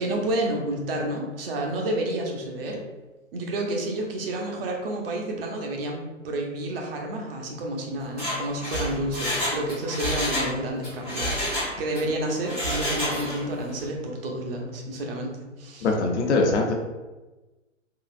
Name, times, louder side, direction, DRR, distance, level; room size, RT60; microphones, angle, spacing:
voice 1, 0.0-2.8 3.3-15.9, right 1 dB, 45° right, 1 dB, 0.8 m, -30 dB
Mechanisms, 8.0-10.5 10.8-12.0 12.4-13.5 13.8-13.9, equal, ahead, 0.3 m, -29 dB
voice 2, 15.8-16.7, left 3 dB, 60° left, 1 dB, 0.7 m, -22 dB
3.8 x 2.4 x 2.5 m, 1.1 s
hypercardioid pair, 125°, 39 cm